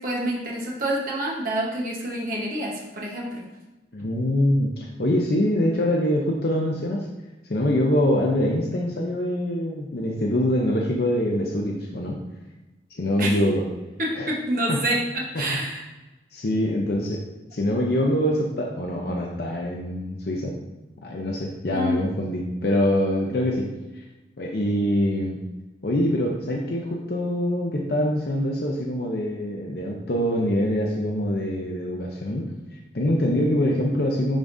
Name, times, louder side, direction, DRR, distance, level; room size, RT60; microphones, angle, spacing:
voice 1, 0.0-3.4 13.2-13.4 14.0-15.8 21.7-22.0, right 1 dB, 50° right, -3 dB, 1.1 m, -27 dB
voice 2, 3.9-7.1 7.5-12.2 12.9-13.6 14.2-14.3 14.7-14.8 16.3-17.2 17.5-20.6 21.0-23.7 23.9-24.0 24.4-25.4 25.8-32.5 32.9-34.4, left 1 dB, 60° left, -1 dB, 0.7 m, -24 dB
10.5 x 3.6 x 2.6 m, 1.1 s
head